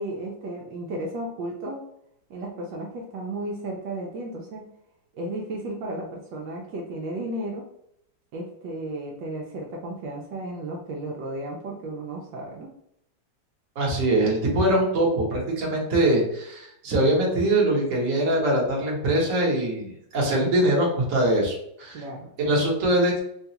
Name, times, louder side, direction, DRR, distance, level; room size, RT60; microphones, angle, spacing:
voice 1, 0.0-1.8 2.3-4.7 5.1-7.6 8.3-12.7 20.4-20.8 21.9-22.3, right 1 dB, 75° right, -1 dB, 1.2 m, -34 dB
voice 2, 13.8-22.0 22.4-23.2, right 1 dB, 50° right, -2 dB, 1.2 m, -23 dB
3.8 x 2.3 x 2.8 m, 0.74 s
omnidirectional pair, 2.0 m